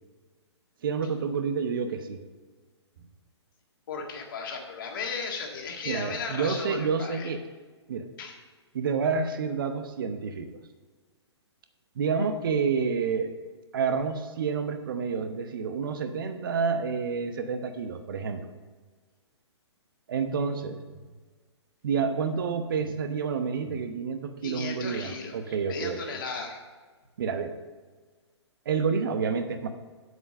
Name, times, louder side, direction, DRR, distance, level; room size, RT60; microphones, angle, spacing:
voice 1, 0.8-2.2 5.9-7.4 7.9-8.1 8.7-10.6 12.0-13.3 13.7-18.5 20.1-20.8 21.8-26.2 27.2-27.6 28.7-29.7, right 5 dB, 50° right, 8 dB, 0.9 m, -29 dB
voice 2, 3.9-7.3 8.2-8.4 24.4-26.6, left 4 dB, 45° left, 2 dB, 1.9 m, -36 dB
7.9 x 7.9 x 5.3 m, 1.4 s
figure-of-eight pair, 125°, 15 cm